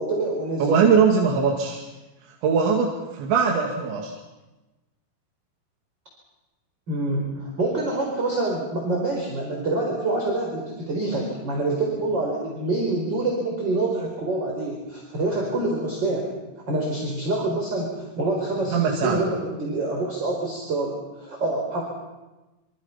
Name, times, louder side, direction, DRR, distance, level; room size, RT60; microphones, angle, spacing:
voice 1, 0.0-0.7 6.9-16.3 16.7-21.8, right 2 dB, 25° right, -1 dB, 4.7 m, -26 dB
voice 2, 0.6-1.9 2.4-4.1 18.7-19.2, right 6 dB, 85° right, 0 dB, 4.6 m, -21 dB
27.0 x 26.5 x 5.8 m, 1.1 s
omnidirectional pair, 5.1 m